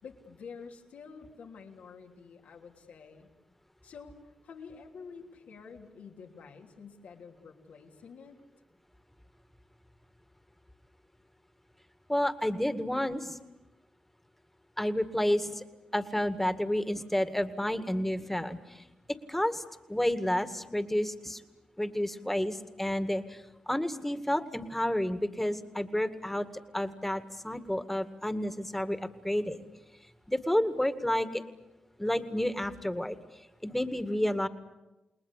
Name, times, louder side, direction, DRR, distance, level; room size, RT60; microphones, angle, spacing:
voice 1, 0.0-3.3 3.8-4.2 4.4-8.4, left 5 dB, 80° left, 2 dB, 3.2 m, -48 dB
voice 2, 12.1-13.4 14.8-15.6 15.9-18.8 19.3-19.6 19.9-21.4 21.8-26.5 26.7-29.6 30.3-31.4 32.0-33.2 33.6-34.5, left 1 dB, 10° left, 10 dB, 2.0 m, -30 dB
29.5 x 20.0 x 8.4 m, 1.0 s
cardioid pair, 65°, 2 cm